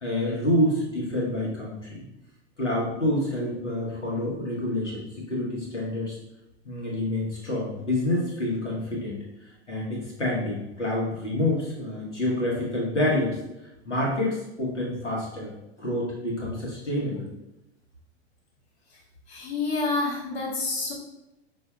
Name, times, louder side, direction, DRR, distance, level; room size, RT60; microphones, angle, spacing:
voice 1, 0.0-2.0 2.6-6.2 6.6-9.2 9.7-13.4 13.8-15.5 15.8-17.3, left 1 dB, 85° left, -5 dB, 1.2 m, -27 dB
voice 2, 19.3-20.9, left 3 dB, 65° left, -3 dB, 1.1 m, -28 dB
5.3 x 2.6 x 2.3 m, 0.93 s
figure-of-eight pair, 95°, 35 cm